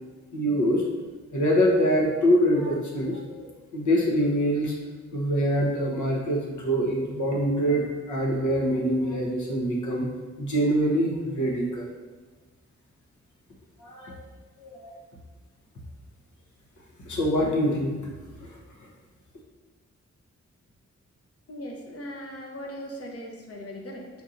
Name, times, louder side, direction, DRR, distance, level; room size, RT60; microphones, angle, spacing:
voice 1, 0.3-0.8 1.3-3.4 3.7-4.7 5.1-10.1 10.4-11.9 13.8-14.2 14.6-15.0 17.0-18.1 18.3-18.6, equal, 85° left, -2 dB, 1.0 m, -24 dB
voice 2, 21.5-24.1, equal, 55° left, 0 dB, 0.8 m, -39 dB
4.6 x 2.7 x 3.8 m, 1.3 s
wide cardioid pair, 115°, 29 cm